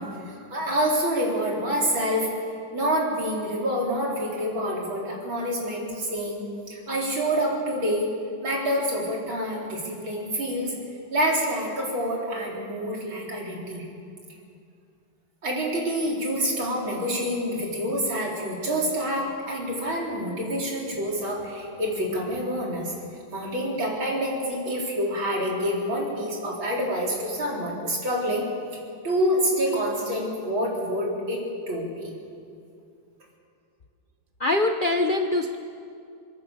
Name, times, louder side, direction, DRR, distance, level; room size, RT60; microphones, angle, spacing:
voice 1, 0.0-2.3 2.7-6.4 6.7-8.1 8.4-10.7 11.1-13.8 15.4-22.9 23.3-28.5 29.0-32.1, equal, 65° right, -3 dB, 5.0 m, -27 dB
voice 2, 34.4-35.6, left 2 dB, 65° left, 6 dB, 0.5 m, -23 dB
24.5 x 21.5 x 6.9 m, 2.4 s
omnidirectional pair, 2.3 m